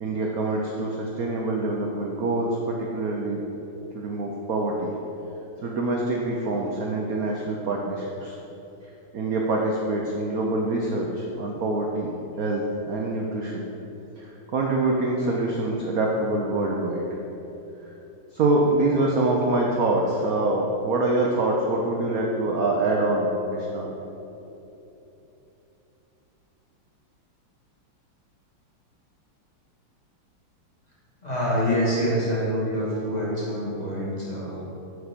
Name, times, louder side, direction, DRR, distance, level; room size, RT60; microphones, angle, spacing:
voice 1, 0.0-3.4 3.9-4.9 5.6-8.4 9.1-12.1 12.4-13.7 14.2-17.1 18.3-23.9, right 2 dB, 60° right, -1 dB, 1.0 m, -25 dB
voice 2, 31.2-34.6, equal, 20° left, -8 dB, 2.1 m, -26 dB
8.0 x 5.0 x 6.7 m, 3.0 s
omnidirectional pair, 2.3 m